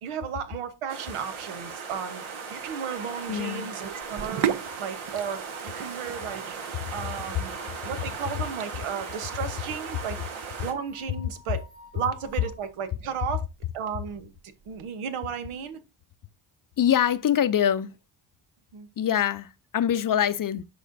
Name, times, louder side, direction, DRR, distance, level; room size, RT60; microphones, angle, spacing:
voice 1, 0.0-2.2 2.5-4.5 4.8-6.5 6.9-7.6 7.8-10.2 10.6-11.6 11.9-13.5 13.7-14.3 14.7-15.8 18.7-18.9, right 7 dB, 90° right, 1.1 m, -34 dB
sound 1, 0.9-10.7, right 5 dB, 75° right, 1.5 m, -38 dB
sound 2, 1.9-12.7, left 3 dB, 20° left, 0.9 m, -52 dB
voice 2, 3.3-3.7 7.0-7.1 16.8-17.9 19.0-20.6, left 9 dB, 45° left, 0.5 m, -24 dB
Sink (filling or washing), 4.0-14.8, right 9 dB, 55° right, 0.7 m, -38 dB
10.0 x 4.2 x 2.6 m
cardioid pair, 60°, 49 cm